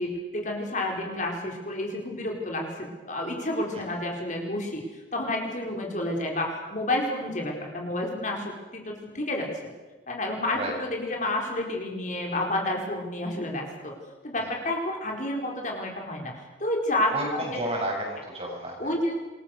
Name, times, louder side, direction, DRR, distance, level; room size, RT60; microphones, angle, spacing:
voice 1, 0.0-4.8 5.1-9.5 10.1-13.9 14.2-16.3 16.6-17.6 18.8-19.1, left 1 dB, 40° left, 0 dB, 4.9 m, -30 dB
voice 2, 17.1-18.9, right 1 dB, 30° right, 0 dB, 7.4 m, -31 dB
27.0 x 22.5 x 6.8 m, 1.2 s
head